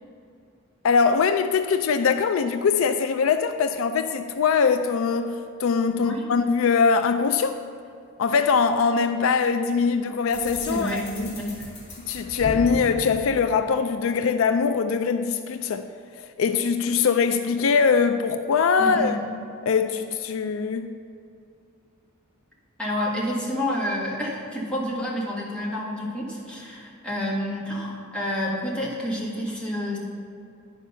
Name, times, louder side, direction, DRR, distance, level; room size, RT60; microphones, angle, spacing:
voice 1, 0.8-7.6 8.2-11.3 12.0-15.9 16.2-19.2 19.7-20.9, left 5 dB, 70° left, 0.4 m, -22 dB
sound 1, 10.3-14.2, left 1 dB, 55° left, 1.8 m, -37 dB
voice 2, 10.6-11.7 18.8-19.2 22.8-30.0, equal, 5° left, 1.6 m, -29 dB
10.0 x 5.1 x 5.5 m
head